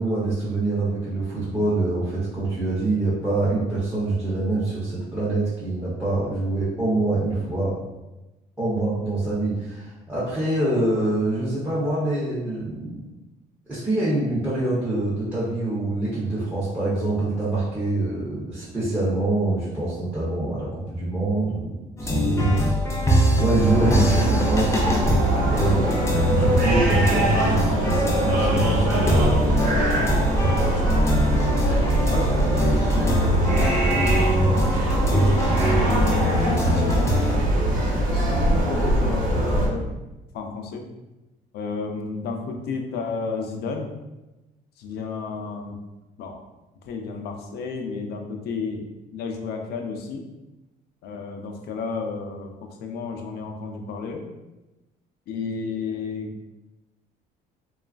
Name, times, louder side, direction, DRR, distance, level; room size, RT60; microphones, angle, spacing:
voice 1, 0.0-7.8 8.6-13.0 13.7-21.7 22.2-22.6 23.1-25.0 25.4-29.3, right 2 dB, 10° right, -10 dB, 0.7 m, -25 dB
sound 1, 22.0-37.4, equal, 15° left, 0.4 m, -24 dB
sound 2, 23.6-39.7, right 1 dB, 55° right, 0.9 m, -22 dB
voice 2, 30.6-34.2 34.7-36.0 36.4-37.4 37.9-39.9 40.3-40.9 41.5-43.9 44.8-45.8 46.2-46.4 46.8-50.3 51.0-54.3 55.3-56.3, left 4 dB, 70° left, 3 dB, 0.5 m, -32 dB
3.0 x 2.3 x 2.4 m, 1.0 s
cardioid pair, 110°, 17 cm